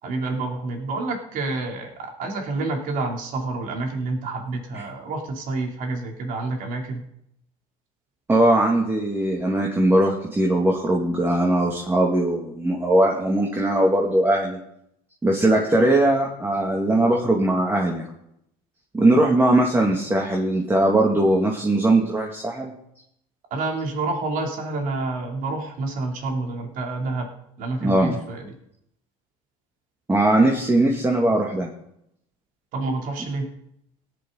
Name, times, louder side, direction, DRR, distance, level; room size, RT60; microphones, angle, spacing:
voice 1, 0.0-1.9 2.2-7.0 23.5-27.3 27.6-28.5 32.7-33.5, right 3 dB, 60° right, 1 dB, 3.3 m, -28 dB
voice 2, 8.3-14.6 15.2-18.1 18.9-22.7 27.8-28.2 30.1-31.7, right 1 dB, 15° right, -1 dB, 2.4 m, -20 dB
17.5 x 10.5 x 4.0 m, 0.75 s
supercardioid pair, 100°, 16 cm